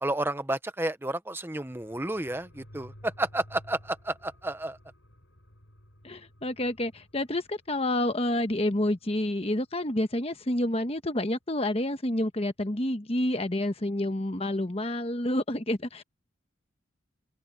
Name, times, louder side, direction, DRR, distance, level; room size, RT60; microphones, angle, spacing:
voice 1, 0.0-4.8, right 1 dB, 10° right, 0.8 m, -31 dB
sound 1, 1.7-10.7 11.1-11.2, equal, 75° left, 3.6 m, -55 dB
voice 2, 6.0-16.0, left 1 dB, 30° left, 1.2 m, -29 dB
head